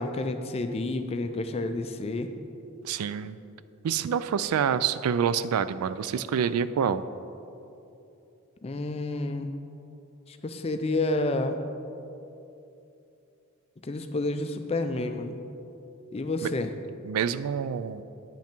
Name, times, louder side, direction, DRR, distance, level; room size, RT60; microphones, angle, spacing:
voice 1, 0.0-2.3 8.6-9.5 10.3-11.6 13.8-15.4 16.1-16.7, left 2 dB, 30° left, 8 dB, 0.4 m, -29 dB
voice 2, 2.8-3.4 3.8-7.0 16.4-16.5 17.0-18.0, right 7 dB, 85° right, 14 dB, 0.3 m, -27 dB
9.2 x 5.8 x 4.4 m, 2.8 s
head